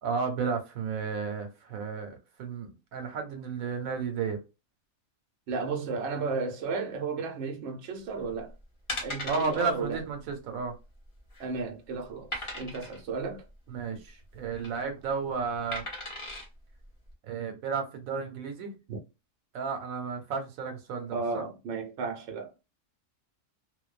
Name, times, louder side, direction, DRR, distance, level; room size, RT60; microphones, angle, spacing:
voice 1, 0.0-4.4 9.3-10.8 13.7-15.8 17.2-18.7 19.5-21.4, right 5 dB, 85° right, 1.1 m, -33 dB
voice 2, 5.5-8.5 9.0-10.0 11.4-13.4 18.9-19.0 21.1-22.5, right 4 dB, 65° right, 0.9 m, -33 dB
sound 1, 8.2-8.4 8.9-9.6 10.0-10.1 10.4-10.5 11.1-11.5 12.3-13.0 14.3-14.7 15.7-16.5 17.1-17.2, left 1 dB, 25° left, 0.8 m, -37 dB
2.5 x 2.1 x 2.3 m
omnidirectional pair, 1.4 m